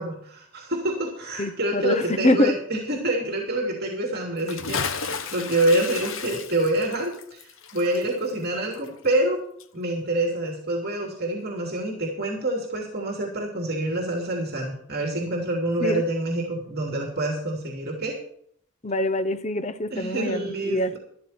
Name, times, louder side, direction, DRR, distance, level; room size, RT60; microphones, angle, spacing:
voice 1, 0.0-7.4 7.7-9.4 9.7-18.2 19.9-21.0, right 1 dB, 50° right, 0 dB, 3.0 m, -27 dB
voice 2, 1.4-2.5 15.8-16.0 18.8-21.0, left 1 dB, 35° left, 11 dB, 0.9 m, -24 dB
Bathtub (filling or washing) / Splash splatter, 4.4-9.3 9.6-9.7, left 5 dB, 70° left, 1.1 m, -33 dB
13.5 x 12.5 x 4.4 m, 0.64 s
head